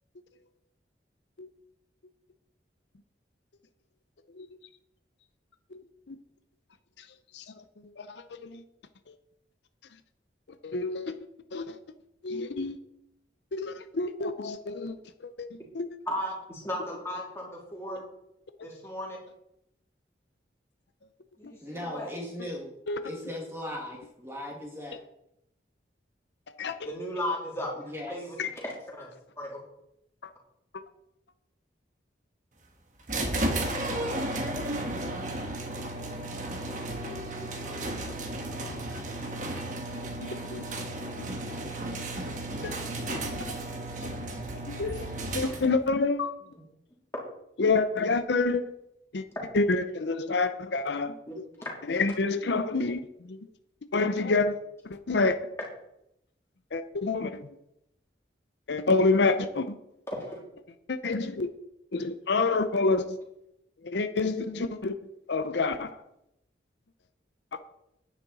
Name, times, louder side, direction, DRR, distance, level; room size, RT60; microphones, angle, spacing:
voice 1, 8.0-8.6 10.6-11.1 11.5-11.8 12.2-12.8 13.5-15.0 15.7-15.9 22.9-23.0 26.6-26.7 28.4-28.5 40.2-40.6 41.2-41.3 42.5-42.7 43.1-43.2 43.5-43.6 44.7-45.1 45.3-46.3 47.6-48.6 49.1-49.2 49.5-51.2 51.9-53.0 53.3-53.4 53.9-54.5 54.9-55.4 56.7-57.4 58.7-59.8 60.9-61.5 61.9-63.2 63.8-64.9 65.3-65.9 67.5-67.6, left 3 dB, 70° left, 0.6 m, -27 dB
voice 2, 16.1-18.0 18.6-19.2 21.4-22.2 26.8-28.3 28.6-29.1 29.4-29.6 37.6-38.7 46.4-46.6 51.6-52.0 60.1-60.4, left 1 dB, 15° left, 2.9 m, -36 dB
voice 3, 21.6-22.8 23.0-25.0 27.8-28.2, left 1 dB, 15° right, 2.0 m, -38 dB
sound 1, 33.1-45.9, right 1 dB, 45° right, 1.3 m, -33 dB
9.9 x 9.6 x 4.1 m
head